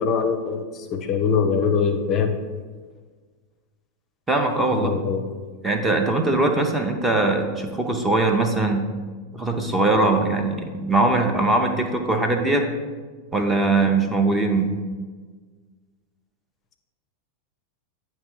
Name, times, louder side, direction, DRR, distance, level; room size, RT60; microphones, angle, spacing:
voice 1, 0.0-2.4 4.7-5.3, left 6 dB, 30° left, 5 dB, 0.6 m, -23 dB
voice 2, 4.3-4.9 5.6-8.8 9.3-12.6 13.3-14.8, right 2 dB, 10° right, 3 dB, 0.7 m, -21 dB
9.0 x 3.1 x 5.4 m, 1.5 s
figure-of-eight pair, 90°, 0 cm